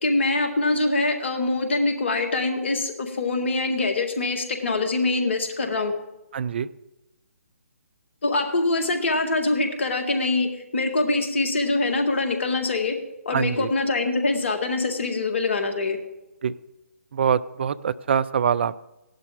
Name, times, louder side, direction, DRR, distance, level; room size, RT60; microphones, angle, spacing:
voice 1, 0.0-5.9 8.2-13.0 13.3-16.0, left 2 dB, 50° left, 5 dB, 1.8 m, -24 dB
voice 2, 6.3-6.7 13.3-13.7 16.4-16.5 17.1-18.8, right 7 dB, 45° right, 17 dB, 0.5 m, -24 dB
16.5 x 11.5 x 3.7 m, 0.96 s
figure-of-eight pair, 140°, 8 cm